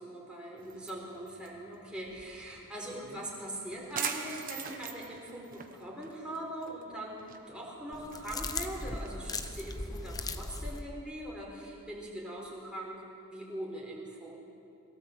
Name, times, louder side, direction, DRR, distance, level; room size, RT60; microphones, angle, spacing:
voice 1, 0.0-13.0 13.3-14.4, right 1 dB, 5° right, -4 dB, 4.0 m, -41 dB
sound 1, 0.6-10.2, right 7 dB, 40° right, 1.3 m, -44 dB
sound 2, 7.9-10.8, left 3 dB, 15° left, 0.8 m, -38 dB
22.0 x 17.5 x 8.0 m, 2.7 s
head